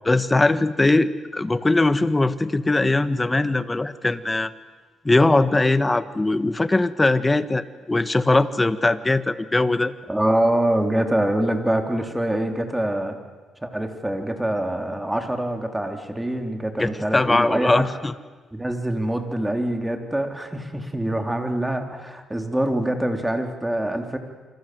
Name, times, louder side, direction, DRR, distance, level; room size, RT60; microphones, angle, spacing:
voice 1, 0.1-4.5 5.0-9.9 16.8-18.1, left 2 dB, 15° left, 13 dB, 1.4 m, -20 dB
voice 2, 10.1-13.2 13.6-17.9 18.5-24.2, right 1 dB, 10° right, 5 dB, 3.7 m, -25 dB
28.0 x 26.0 x 7.9 m, 1.3 s
cardioid pair, 90°, 0 cm